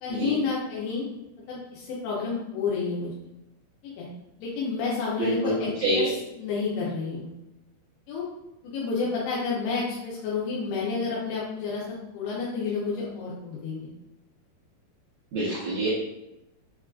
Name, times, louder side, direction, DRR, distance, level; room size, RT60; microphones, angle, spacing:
voice 1, 0.0-1.1 1.5-3.1 3.8-4.1 4.4-7.3 8.1-8.3 8.6-11.8 12.1-13.9, left 4 dB, 80° left, -6 dB, 2.8 m, -30 dB
voice 2, 5.2-5.5 5.8-6.1 15.3-15.9, right 1 dB, 80° right, -9 dB, 1.7 m, -26 dB
6.3 x 2.4 x 2.3 m, 0.90 s
omnidirectional pair, 4.8 m